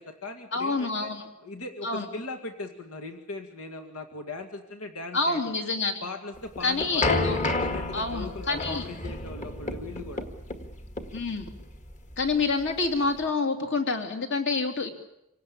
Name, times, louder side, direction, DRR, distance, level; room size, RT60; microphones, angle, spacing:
voice 1, 0.0-1.1 1.4-5.5 6.0-10.3, left 2 dB, 85° left, 6 dB, 2.1 m, -39 dB
voice 2, 0.5-1.3 1.8-2.1 5.1-6.0 6.6-7.4 7.9-8.8 11.1-11.5 12.2-14.9, left 3 dB, 55° left, 5 dB, 3.0 m, -27 dB
sound 1, 6.4-13.2, left 2 dB, 35° left, 1.9 m, -31 dB
26.5 x 17.5 x 8.7 m, 0.87 s
head